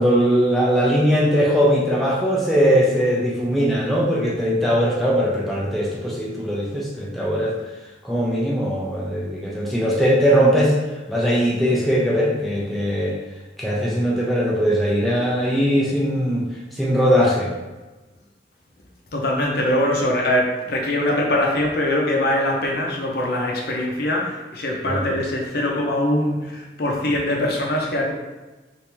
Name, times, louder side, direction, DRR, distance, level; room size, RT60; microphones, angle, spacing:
voice 1, 0.0-7.6 8.0-10.7 11.1-13.2 13.6-17.5 24.8-25.0, equal, ahead, -5 dB, 0.4 m, -20 dB
voice 2, 19.1-28.1, left 1 dB, 55° left, -1 dB, 0.6 m, -22 dB
3.3 x 2.6 x 2.9 m, 1.1 s
head